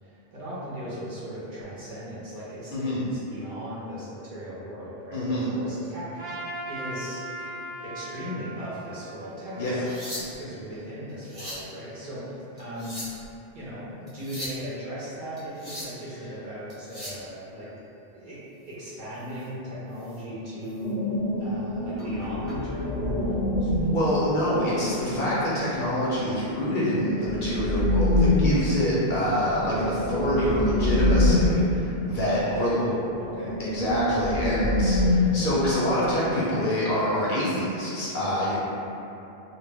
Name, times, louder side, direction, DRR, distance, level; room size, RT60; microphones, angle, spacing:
voice 1, 0.0-6.1 6.7-7.2 7.8-13.2 13.5-17.7 18.1-20.9 21.4-23.7 32.4-33.5, equal, 55° right, -10 dB, 0.8 m, -37 dB
voice 2, 2.7-3.0 5.1-5.5 9.6-9.8 23.9-32.8 33.6-38.5, equal, 60° left, -8 dB, 0.6 m, -26 dB
Trumpet, 6.2-10.5, right 1 dB, 20° left, 0.6 m, -39 dB
sound 1, 9.7-10.6 11.1-11.7 12.6-13.3 14.1-14.6 15.4-16.0 16.7-17.2 19.3-19.5 20.0-20.2 20.7-20.8 22.0-22.6 23.7-23.9, equal, 35° right, 1.0 m, -39 dB
sound 2, 20.8-25.7 26.8-32.3 32.6-32.7 33.1-36.0, left 1 dB, 90° left, 0.8 m, -25 dB
2.2 x 2.0 x 3.4 m, 2.8 s
omnidirectional pair, 1.0 m